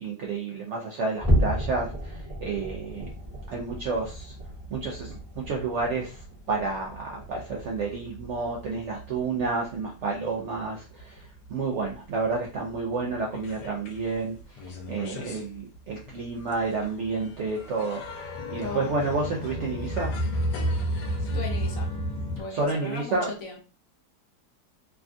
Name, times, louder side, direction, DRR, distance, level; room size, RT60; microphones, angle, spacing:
voice 1, 0.0-3.1 3.5-4.3 4.7-20.1 22.5-23.3, right 3 dB, 70° right, -1 dB, 0.7 m, -30 dB
sound 1, 1.2-7.8 8.2-8.5 8.9-9.1 9.6-9.7, equal, 25° right, 0.9 m, -32 dB
sound 2, 2.9-9.6 9.9-11.0 11.4-11.5 11.9-12.0 12.2-14.0 14.4-22.4, equal, 80° left, 1.2 m, -33 dB
voice 2, 18.6-18.9 21.2-21.9 22.4-23.6, left 4 dB, 60° left, 1 dB, 1.0 m, -37 dB
3.3 x 2.3 x 2.5 m, 0.35 s
omnidirectional pair, 1.7 m